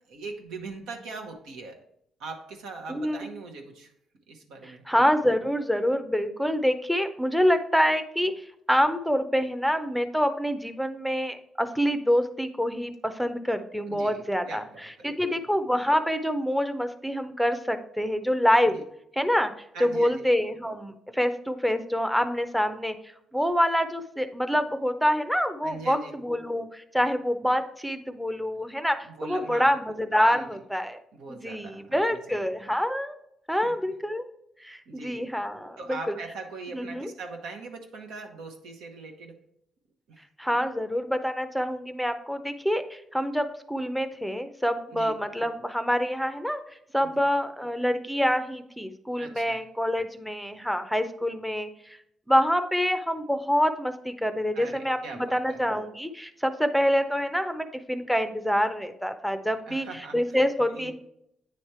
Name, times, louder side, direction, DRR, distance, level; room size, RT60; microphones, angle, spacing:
voice 1, 0.0-1.8 2.2-3.9 4.3-4.8 13.9-15.4 18.7-18.8 19.7-20.3 25.6-26.1 29.0-29.8 30.3-30.5 31.1-32.4 33.5-33.7 34.9-35.3 35.8-39.4 40.1-40.2 44.9-45.1 47.0-47.2 49.2-49.6 54.5-55.6 59.7-60.4 60.7-60.9, right 3 dB, 90° right, 3 dB, 1.2 m, -41 dB
voice 2, 2.9-3.4 4.9-18.8 19.2-23.0 23.3-31.0 31.3-33.2 33.5-34.3 34.6-36.1 36.7-37.1 40.4-46.6 46.9-52.0 52.3-60.9, equal, ahead, 9 dB, 0.6 m, -26 dB
9.1 x 3.2 x 4.3 m, 0.76 s
cardioid pair, 90°, 0 cm